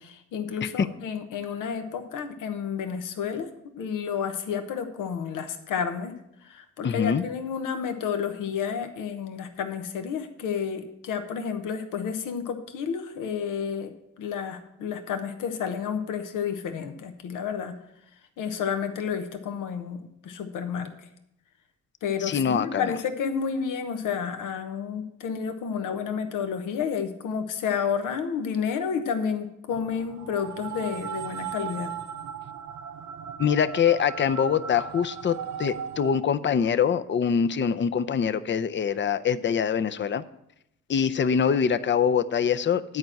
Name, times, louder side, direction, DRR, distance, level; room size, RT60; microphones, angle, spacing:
voice 1, 0.0-3.5 3.8-6.1 6.4-17.8 18.4-20.9 22.0-31.9, left 7 dB, 85° left, 7 dB, 1.0 m, -31 dB
voice 2, 6.8-7.2 22.2-22.9 33.4-40.2 40.9-43.0, left 7 dB, 40° left, 13 dB, 0.6 m, -24 dB
sound 1, 29.7-36.2, right 8 dB, 65° right, 0.6 m, -37 dB
9.6 x 4.6 x 7.6 m, 0.82 s
supercardioid pair, 60°, 31 cm